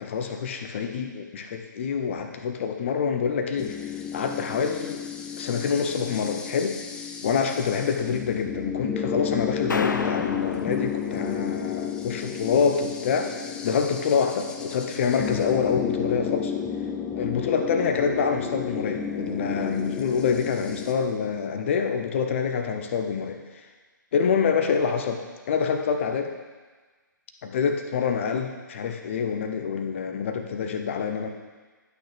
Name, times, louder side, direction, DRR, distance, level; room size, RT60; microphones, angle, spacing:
voice 1, 0.0-5.0 5.4-6.8 7.2-16.5 17.1-23.6 24.1-26.3 27.4-31.3, left 6 dB, 40° left, 5 dB, 0.8 m, -26 dB
sound 1, 3.6-20.9, left 7 dB, 10° left, 0.3 m, -32 dB
sound 2, 9.7-11.7, left 4 dB, 70° left, 0.5 m, -31 dB
11.5 x 6.3 x 3.4 m, 1.4 s
figure-of-eight pair, 130°, 11 cm